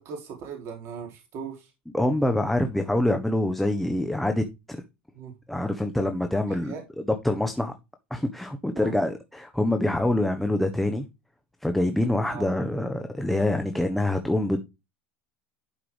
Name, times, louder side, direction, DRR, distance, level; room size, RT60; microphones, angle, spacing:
voice 1, 0.0-1.7 5.1-5.3 6.5-6.8 8.7-8.9 12.3-12.4, right 6 dB, 55° right, 3.2 m, -39 dB
voice 2, 1.9-4.8 5.5-6.7 7.0-7.7 8.1-11.1 11.6-14.6, left 1 dB, 5° left, 1.2 m, -25 dB
11.5 x 5.8 x 3.4 m
supercardioid pair, 100°, 6 cm